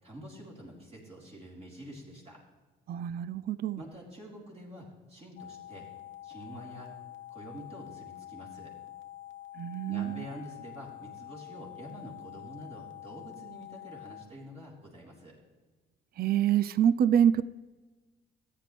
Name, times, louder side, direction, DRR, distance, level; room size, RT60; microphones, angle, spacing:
voice 1, 0.0-2.4 3.8-5.9 6.2-6.9 7.3-8.7 9.9-15.3, equal, 30° right, -4 dB, 3.9 m, -47 dB
voice 2, 2.9-3.8 9.6-10.2 16.2-17.4, right 9 dB, 50° right, 16 dB, 0.4 m, -26 dB
sound 1, 5.4-14.3, left 13 dB, 80° left, 0.9 m, -47 dB
14.5 x 9.3 x 3.4 m, 1.3 s
cardioid pair, 90°, 20 cm